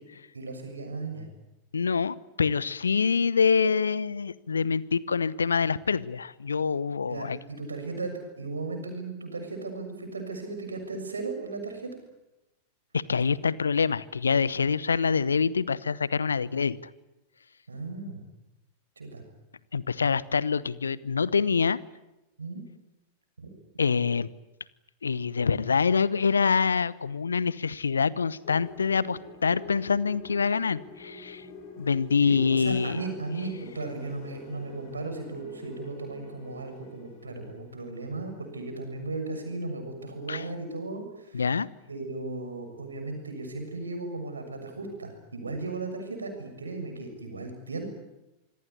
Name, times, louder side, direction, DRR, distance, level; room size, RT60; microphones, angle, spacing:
voice 1, 0.3-1.3 7.0-11.9 17.7-18.2 19.0-19.2 22.4-22.6 23.4-23.5 32.2-41.4 41.9-47.9, right 3 dB, 75° right, 5 dB, 6.9 m, -36 dB
voice 2, 1.7-7.4 12.9-16.8 19.7-21.8 23.8-24.3 25.0-31.5 31.8-33.0 40.3-40.5 41.3-41.7, left 5 dB, 75° left, 20 dB, 0.9 m, -25 dB
sound 1, 28.4-38.6, left 4 dB, 50° left, 7.3 m, -47 dB
26.5 x 21.5 x 9.8 m, 0.95 s
figure-of-eight pair, 90°, 0 cm